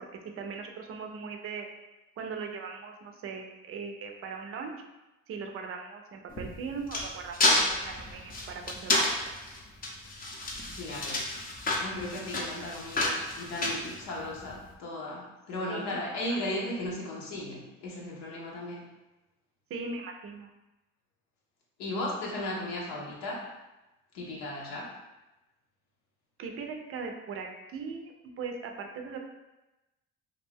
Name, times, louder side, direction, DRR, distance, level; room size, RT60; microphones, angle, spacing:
voice 1, 0.4-1.7 2.2-4.7 5.3-9.1 15.7-16.4 19.7-20.5 26.4-29.2, right 5 dB, 50° right, 3 dB, 0.5 m, -39 dB
sound 1, 6.3-14.5, left 2 dB, 30° left, 0.6 m, -30 dB
voice 2, 10.8-11.2 11.8-18.8 21.8-23.5 24.1-24.9, left 1 dB, 80° left, -4 dB, 0.7 m, -36 dB
2.4 x 2.2 x 3.4 m, 1.0 s
supercardioid pair, 75°, 30 cm